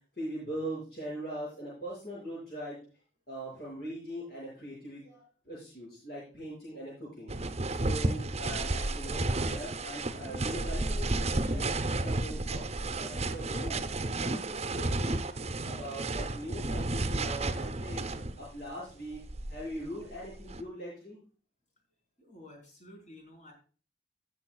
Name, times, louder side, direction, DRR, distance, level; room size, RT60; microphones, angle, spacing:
voice 1, 0.1-2.8 3.3-7.3 7.7-11.6 11.9-13.8 14.2-15.2 15.6-18.0 18.4-21.2, right 1 dB, 60° left, -6 dB, 6.3 m, -41 dB
sound 1, 7.3-18.6 19.1-20.6, right 2 dB, 40° right, 0.8 m, -32 dB
voice 2, 22.2-23.5, left 1 dB, 45° left, 1 dB, 4.5 m, -52 dB
18.0 x 7.3 x 2.3 m, 0.38 s
head